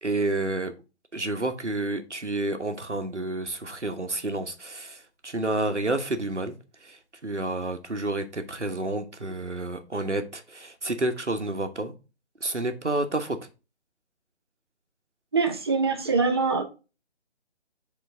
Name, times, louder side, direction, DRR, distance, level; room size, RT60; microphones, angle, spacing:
voice 1, 0.0-0.7 1.1-6.5 6.8-11.9 12.4-13.4, right 2 dB, 90° right, 1.2 m, -30 dB
voice 2, 15.3-16.6, right 4 dB, 25° right, 0.7 m, -23 dB
7.3 x 3.7 x 3.8 m
figure-of-eight pair, 145°, 34 cm